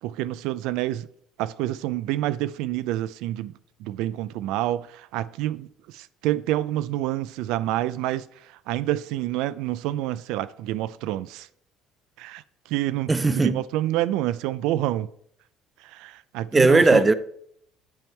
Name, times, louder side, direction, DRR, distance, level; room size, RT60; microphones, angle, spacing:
voice 1, 0.0-1.1 1.4-3.5 3.8-11.5 12.2-15.1 15.8-17.1, right 14 dB, 80° right, 0.3 m, -28 dB
voice 2, 13.1-13.5 16.5-17.1, right 3 dB, 15° right, 0.4 m, -17 dB
10.5 x 3.6 x 4.4 m
cardioid pair, 125°, 0 cm